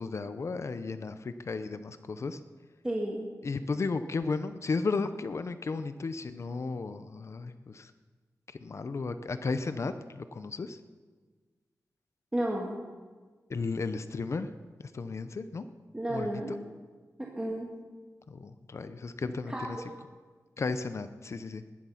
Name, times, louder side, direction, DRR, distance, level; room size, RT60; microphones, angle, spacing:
voice 1, 0.0-2.4 3.4-7.9 8.5-10.8 13.5-14.5 14.9-15.6 16.1-16.6 18.3-19.8 20.6-21.6, left 4 dB, 50° left, 11 dB, 0.7 m, -34 dB
voice 2, 2.8-3.3 12.3-12.8 15.9-16.5 17.2-17.7 19.5-19.7, right 1 dB, 15° right, -2 dB, 1.9 m, -32 dB
20.0 x 11.0 x 5.8 m, 1.4 s
wide cardioid pair, 130°, 6 cm